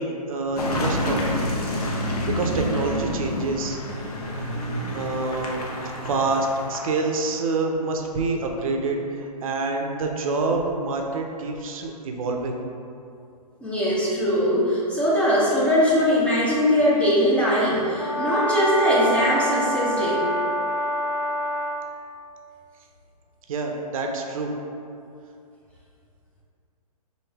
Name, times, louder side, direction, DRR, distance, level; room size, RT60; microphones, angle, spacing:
voice 1, 0.0-1.4 2.3-3.8 4.9-5.6 6.1-12.6 23.5-24.5, right 3 dB, 60° right, 2 dB, 0.5 m, -26 dB
Car passing by / Engine, 0.6-7.1, left 1 dB, 70° left, 0.7 m, -28 dB
voice 2, 13.6-20.3, equal, 5° left, -8 dB, 0.4 m, -21 dB
Brass instrument, 17.9-21.8, equal, 30° left, 1.2 m, -26 dB
3.2 x 2.6 x 3.4 m, 2.5 s
hypercardioid pair, 135°, 20 cm